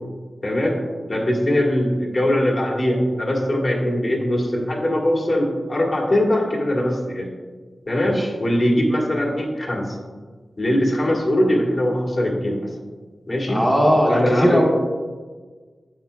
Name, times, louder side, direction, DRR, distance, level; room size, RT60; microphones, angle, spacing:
voice 1, 0.4-0.8 1.1-7.3 7.9-10.0 10.6-12.6 13.3-13.6 14.1-14.6, left 1 dB, 40° left, -2 dB, 1.7 m, -21 dB
voice 2, 13.5-14.6, equal, 5° left, -4 dB, 1.3 m, -18 dB
9.7 x 7.3 x 2.3 m, 1.4 s
wide cardioid pair, 115°, 0 cm